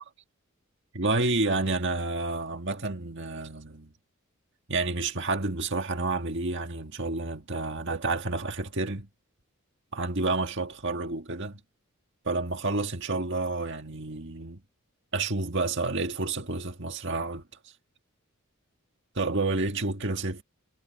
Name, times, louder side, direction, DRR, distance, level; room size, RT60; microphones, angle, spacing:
voice 1, 0.9-3.9 4.7-9.1 9.9-11.6 12.3-14.6 15.1-17.7 19.2-20.4, right 3 dB, 55° right, 1.8 m, -29 dB
head